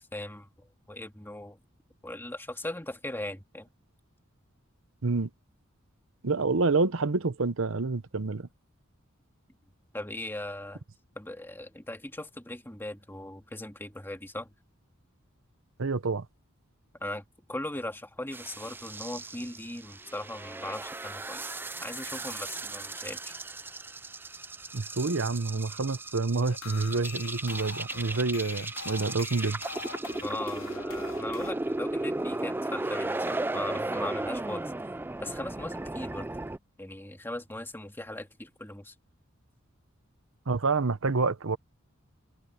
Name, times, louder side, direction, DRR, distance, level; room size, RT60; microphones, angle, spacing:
voice 1, 0.1-1.6 2.0-3.7 9.9-10.8 11.2-14.5 17.0-17.2 17.5-21.4 21.8-23.4 30.2-34.7 35.2-36.3 36.8-38.9, left 1 dB, 10° left, 2.2 m, -39 dB
voice 2, 6.2-8.5 15.8-16.3 24.7-29.6 40.5-41.6, right 3 dB, 70° right, 0.9 m, -28 dB
sound 1, 18.3-36.6, right 2 dB, 10° right, 0.4 m, -36 dB
sound 2, 26.5-31.5, left 5 dB, 75° left, 3.6 m, -43 dB
head